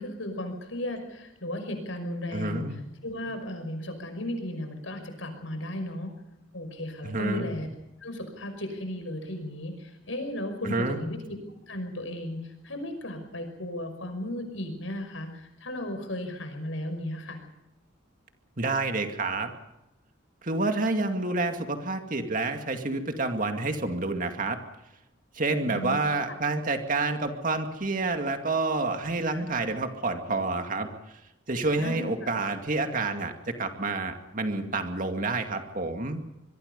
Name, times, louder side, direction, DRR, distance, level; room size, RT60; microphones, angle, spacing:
voice 1, 0.0-2.7 3.0-6.1 6.5-7.7 8.0-11.4 11.7-17.4 25.7-26.0 29.3-29.4 31.8-32.1, left 1 dB, 75° left, 6 dB, 5.6 m, -35 dB
voice 2, 2.3-2.8 7.0-7.5 10.6-11.0 18.6-19.5 20.4-24.6 25.3-30.9 31.5-36.2, right 3 dB, 40° right, 6 dB, 2.3 m, -28 dB
25.0 x 22.5 x 5.4 m, 0.88 s
head